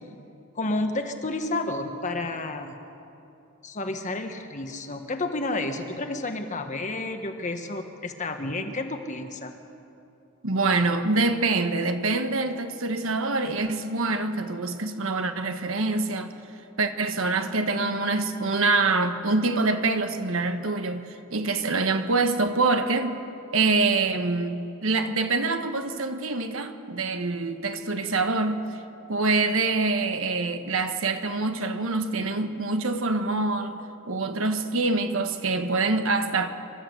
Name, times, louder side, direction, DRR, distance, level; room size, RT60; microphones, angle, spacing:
voice 1, 0.5-2.7 3.6-9.5, left 2 dB, 35° left, 6 dB, 1.4 m, -30 dB
voice 2, 10.4-16.3 16.8-23.2 23.5-28.7 29.1-33.8 34.0-36.5, right 3 dB, 65° right, 7 dB, 1.3 m, -25 dB
26.0 x 13.0 x 8.0 m, 2.7 s
head